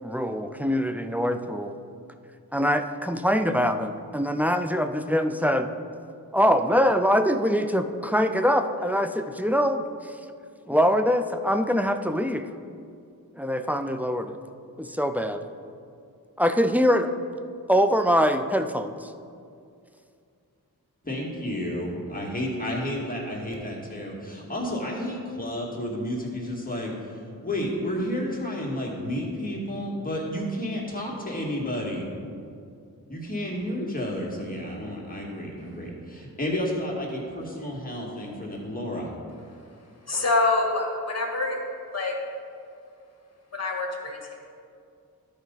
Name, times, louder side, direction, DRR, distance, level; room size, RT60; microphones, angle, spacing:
voice 1, 0.0-1.7 2.5-5.7 6.3-9.9 10.7-12.5 13.4-14.4 14.8-15.4 16.4-17.1 17.7-19.1, equal, 5° right, 7 dB, 0.4 m, -23 dB
voice 2, 21.0-26.9 27.4-32.1 33.1-39.1, left 1 dB, 20° left, -3 dB, 2.1 m, -31 dB
voice 3, 40.1-41.6 41.9-42.2 43.5-44.3, left 3 dB, 40° left, 0 dB, 1.8 m, -26 dB
12.0 x 5.1 x 4.1 m, 2.4 s
cardioid pair, 50°, 38 cm